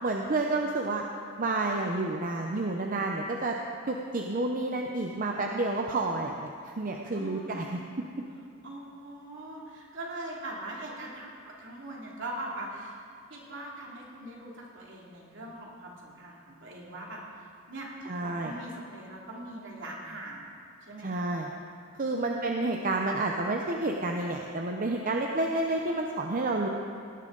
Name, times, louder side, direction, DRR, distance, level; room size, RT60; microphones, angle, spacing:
voice 1, 0.0-1.0 1.4-3.6 3.9-7.8 18.0-18.5 21.0-21.5 22.0-26.7, right 2 dB, 40° right, 1 dB, 0.7 m, -30 dB
voice 2, 7.1-7.8 8.6-13.0 13.3-17.9 18.2-20.5 20.9-21.3 22.1-22.6, right 1 dB, 65° right, -3 dB, 2.7 m, -41 dB
18.0 x 11.5 x 4.0 m, 2.5 s
head